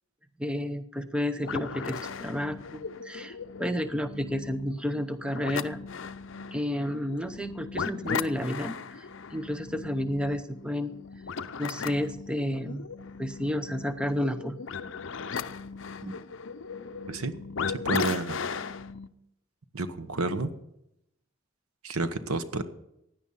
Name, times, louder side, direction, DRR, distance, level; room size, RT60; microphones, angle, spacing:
voice 1, 0.4-5.8 6.5-10.9 11.6-12.9 13.2-14.6, left 1 dB, 5° right, 9 dB, 0.7 m, -31 dB
sound 1, 1.4-19.1, left 5 dB, 60° left, 0.6 m, -37 dB
voice 2, 17.7-18.4 19.7-20.5 21.8-22.6, right 2 dB, 90° right, 10 dB, 1.2 m, -30 dB
16.0 x 10.0 x 5.6 m, 0.82 s
head